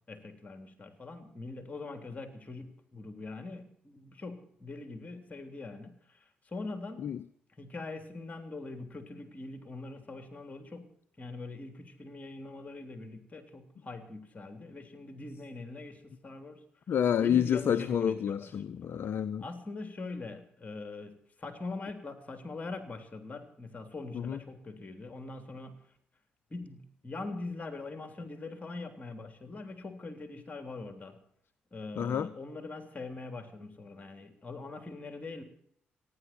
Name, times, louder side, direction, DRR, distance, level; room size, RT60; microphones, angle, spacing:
voice 1, 0.1-7.1 7.6-10.9 11.2-16.6 17.2-18.5 19.4-25.8 26.5-31.2 31.7-35.4, left 3 dB, 30° left, 3.3 m, -42 dB
voice 2, 16.9-19.4 24.1-24.4 32.0-32.3, left 8 dB, 50° left, 0.6 m, -29 dB
27.5 x 10.5 x 4.4 m
figure-of-eight pair, 40°, 5 cm